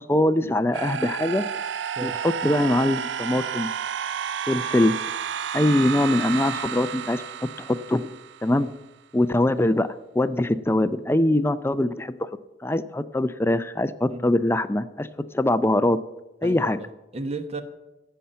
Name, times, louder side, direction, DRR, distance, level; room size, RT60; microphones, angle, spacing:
voice 1, 0.0-1.4 2.0-3.7 4.5-4.9 5.5-7.2 7.6-8.1 8.4-8.7 9.1-9.9 10.2-12.3 12.6-15.1 15.3-16.0 16.4-16.8, left 1 dB, 15° left, 13 dB, 0.4 m, -22 dB
sound 1, 0.7-8.7, right 8 dB, 85° right, 0.5 m, -31 dB
voice 2, 16.4-17.6, right 2 dB, 35° right, 9 dB, 1.0 m, -34 dB
15.0 x 5.7 x 8.6 m, 1.0 s
head